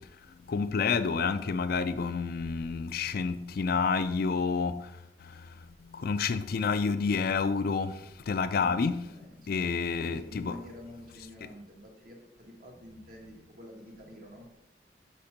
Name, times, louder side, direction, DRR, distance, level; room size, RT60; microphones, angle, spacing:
voice 1, 0.5-4.8 5.8-8.0 8.3-9.0 9.5-10.5, left 5 dB, 60° left, 0.4 m, -29 dB
voice 2, 8.6-9.5 10.0-14.5, left 1 dB, 55° right, 1.4 m, -48 dB
5.2 x 4.3 x 5.1 m
head